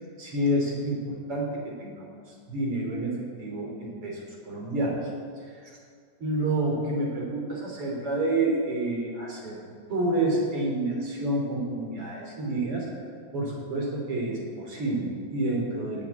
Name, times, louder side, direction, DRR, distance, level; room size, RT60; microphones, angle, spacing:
voice 1, 0.2-2.2 2.5-3.1 3.4-5.1 5.6-5.7 6.2-12.9 13.3-16.1, right 1 dB, 50° right, -1 dB, 4.2 m, -29 dB
17.0 x 8.8 x 8.4 m, 2.2 s
omnidirectional pair, 3.4 m